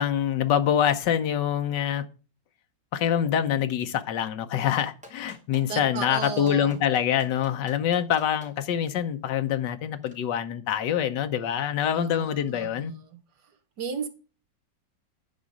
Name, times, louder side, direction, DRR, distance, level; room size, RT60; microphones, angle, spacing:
voice 1, 0.0-2.0 2.9-12.9, left 9 dB, 75° left, 1.5 m, -25 dB
Clapping, 4.8-8.5 10.0-10.1, equal, 5° right, 3.0 m, -47 dB
voice 2, 5.7-6.8 11.9-13.5 13.8-14.1, right 6 dB, 65° right, 1.9 m, -35 dB
10.5 x 4.8 x 5.2 m
omnidirectional pair, 1.9 m